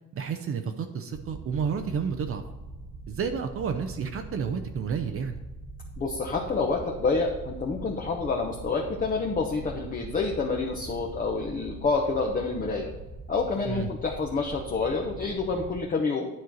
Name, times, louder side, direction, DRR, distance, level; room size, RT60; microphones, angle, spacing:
voice 1, 0.1-2.4 3.1-5.4 13.6-13.9, right 6 dB, 40° right, 7 dB, 0.7 m, -31 dB
sound 1, 1.1-15.8, right 2 dB, 20° right, 1.2 m, -42 dB
voice 2, 6.0-12.9 13.3-16.3, left 4 dB, 25° left, 0 dB, 0.9 m, -28 dB
9.6 x 4.5 x 6.3 m, 1.1 s
cardioid pair, 140°, 33 cm